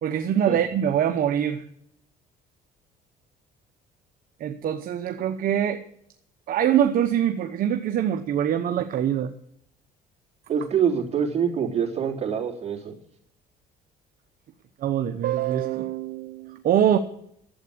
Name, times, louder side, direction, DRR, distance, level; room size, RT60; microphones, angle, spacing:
voice 1, 0.0-1.6 4.4-5.8 6.5-9.3 14.8-17.0, right 10 dB, 60° right, 7 dB, 0.9 m, -24 dB
voice 2, 10.5-12.9, right 7 dB, 40° right, -2 dB, 3.5 m, -25 dB
12.0 x 8.1 x 8.6 m, 0.71 s
cardioid pair, 110°, 17 cm